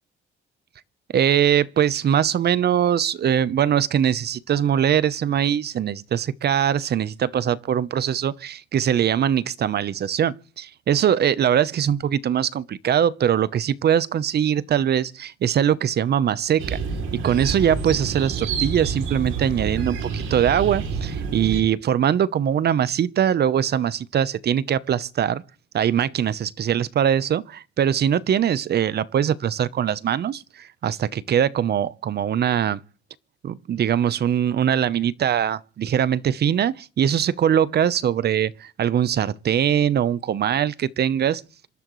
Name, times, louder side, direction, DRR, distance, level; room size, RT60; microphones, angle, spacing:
voice 1, 1.1-16.8 17.1-25.4 25.7-32.8 33.4-41.4, right 9 dB, 55° right, 0.9 m, -22 dB
sound 1, 16.6-21.6, right 5 dB, 90° right, 3.1 m, -28 dB
27.0 x 12.0 x 3.2 m
cardioid pair, 90°, 20 cm